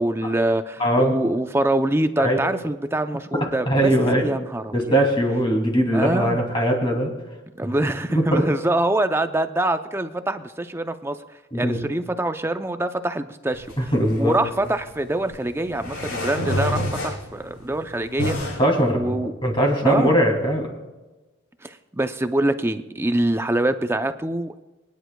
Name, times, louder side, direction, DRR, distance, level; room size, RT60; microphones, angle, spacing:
voice 1, 0.0-3.9 4.2-4.7 5.9-6.4 7.6-11.2 11.5-18.6 18.9-19.3 19.8-20.1 21.6-24.6, right 1 dB, 10° right, 9 dB, 0.5 m, -24 dB
voice 2, 0.8-1.2 2.2-2.4 3.7-4.3 4.7-7.1 8.1-8.5 11.5-11.8 13.8-14.4 18.3-20.7, equal, 25° left, 1 dB, 2.6 m, -21 dB
sound 1, 13.5-18.6, left 1 dB, 65° left, 4.5 m, -30 dB
25.0 x 10.5 x 2.2 m, 1.1 s
head